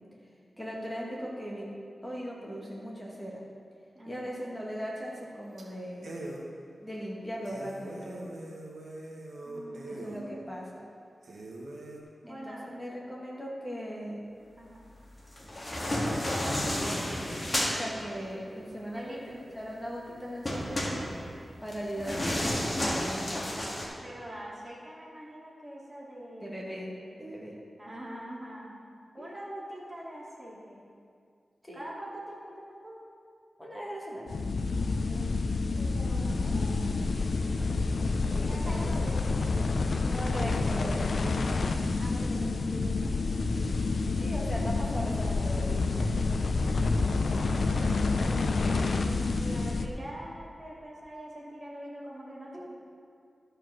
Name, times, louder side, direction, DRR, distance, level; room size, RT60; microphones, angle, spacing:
voice 1, 0.6-1.7 2.0-3.4 4.0-6.1 6.8-8.4 9.9-10.8 12.3-14.3 15.9-16.3 16.9-21.1 21.6-23.7 26.4-26.9 27.2-27.6 29.2-29.4 31.6-31.9 33.6-34.4 38.3-39.1 40.0-41.4 44.2-45.9, equal, 10° left, -4 dB, 2.2 m, -39 dB
voice 2, 3.9-4.5 9.4-10.5 12.2-12.7 14.6-14.8 18.9-19.3 24.0-26.9 27.8-28.7 29.1-30.8 31.7-33.0 34.6-35.5 35.8-37.1 38.5-39.2 42.0-43.4 46.7-47.7 48.2-52.7, right 1 dB, 20° right, -6 dB, 2.7 m, -44 dB
sound 1, 5.0-5.3 5.6-5.7 6.0-6.4 6.9-7.0 7.4-10.2 10.8-10.9 11.2-12.0, right 2 dB, 75° right, 1.4 m, -43 dB
sound 2, 15.3-17.8 20.5-23.9, left 1 dB, 30° left, 1.8 m, -31 dB
sound 3, 34.3-49.9, left 3 dB, 70° left, 0.6 m, -28 dB
12.5 x 4.9 x 6.3 m, 2.3 s
wide cardioid pair, 85°, 0 cm